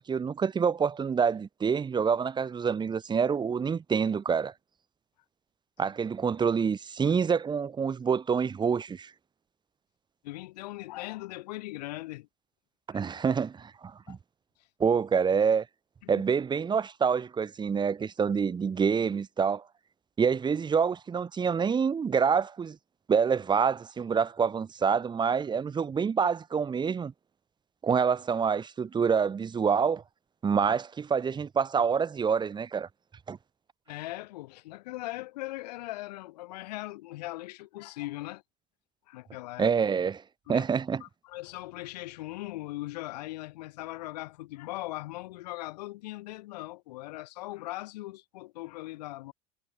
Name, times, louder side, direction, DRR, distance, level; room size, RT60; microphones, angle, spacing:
voice 1, 0.0-4.5 5.8-9.1 12.9-14.2 14.8-15.7 16.1-19.6 20.2-22.8 23.1-27.1 27.8-30.0 30.4-32.9 33.3-33.4 39.6-40.2 40.5-41.0, right 6 dB, 20° right, 1.3 m, -27 dB
voice 2, 10.2-12.3 12.9-13.0 14.1-14.2 16.0-16.2 33.9-38.4 39.1-39.7 40.5-40.6 41.0-49.3, left 18 dB, 90° left, 2.0 m, -39 dB
supercardioid pair, 115°, 20 cm